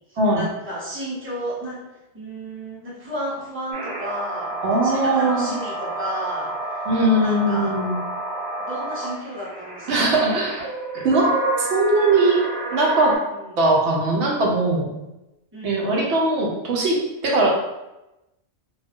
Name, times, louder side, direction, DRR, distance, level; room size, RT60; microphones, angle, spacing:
voice 1, 0.4-1.8 2.1-4.5 4.8-6.5 7.2-7.7 8.6-10.1 13.4-13.5 15.5-16.1, right 1 dB, 10° right, -9 dB, 1.0 m, -32 dB
sound 1, 3.7-13.2, right 2 dB, 55° right, 1.3 m, -31 dB
voice 2, 4.6-5.5 6.9-8.0 9.9-12.4 12.7-13.2 13.6-15.0 15.6-17.5, right 2 dB, 80° right, -2 dB, 1.0 m, -20 dB
2.6 x 2.2 x 3.4 m, 0.95 s
omnidirectional pair, 1.1 m